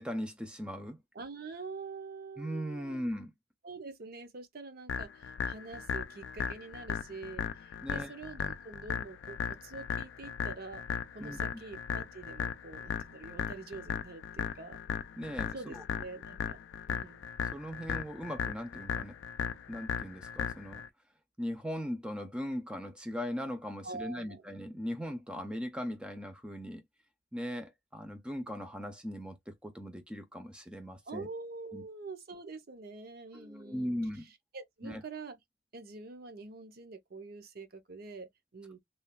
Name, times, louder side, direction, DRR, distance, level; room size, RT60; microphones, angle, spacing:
voice 1, 0.0-1.0 2.4-3.3 7.8-8.1 11.2-11.4 15.2-15.8 17.5-19.2 19.7-20.8 21.4-26.8 27.3-31.3 31.7-31.8 33.3-34.3 34.8-35.0, equal, 5° right, 0.4 m, -39 dB
voice 2, 1.1-3.0 3.6-14.8 15.5-16.6 16.9-17.2 23.8-24.4 31.1-34.0 34.5-35.4 35.7-38.8, right 3 dB, 55° right, 0.7 m, -46 dB
sound 1, 4.9-20.9, left 7 dB, 85° left, 0.3 m, -37 dB
3.1 x 2.2 x 2.2 m
head